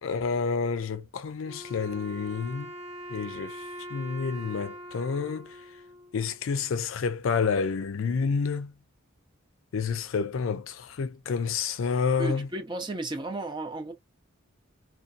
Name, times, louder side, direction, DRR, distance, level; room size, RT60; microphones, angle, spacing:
voice 1, 0.0-2.7 3.1-5.6 6.1-8.7 9.7-12.5, left 5 dB, 70° left, 0.4 m, -29 dB
Wind instrument woodwind instrument, 1.4-6.6, equal, 55° right, 1.1 m, -43 dB
voice 2, 12.2-13.9, right 2 dB, 20° right, 0.6 m, -34 dB
2.6 x 2.3 x 2.4 m
head